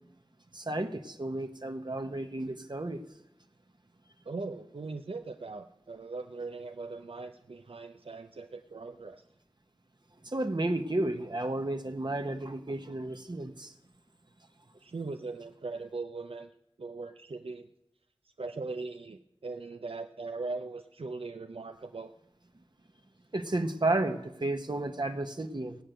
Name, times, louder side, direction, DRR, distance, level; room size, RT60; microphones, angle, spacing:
voice 1, 0.5-3.0 10.2-13.7 23.3-25.8, right 2 dB, 50° right, 6 dB, 1.1 m, -32 dB
voice 2, 4.3-9.2 14.8-16.5 16.8-17.7 18.4-22.1, right 3 dB, 75° right, 7 dB, 0.6 m, -40 dB
17.0 x 6.6 x 9.0 m, 0.81 s
wide cardioid pair, 55°, 10 cm